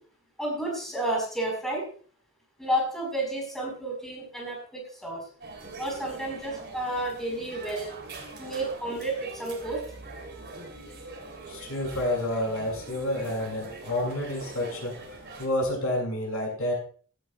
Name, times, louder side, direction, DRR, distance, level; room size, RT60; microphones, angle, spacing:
voice 1, 0.4-1.8 2.6-5.2 5.8-7.9 8.4-9.8, right 1 dB, ahead, -1 dB, 4.9 m, -31 dB
sound 1, 5.4-15.5, right 2 dB, 55° right, 3.7 m, -43 dB
voice 2, 11.5-14.9 15.4-16.7, left 1 dB, 85° left, 0 dB, 6.9 m, -29 dB
16.5 x 12.0 x 2.5 m, 0.43 s
head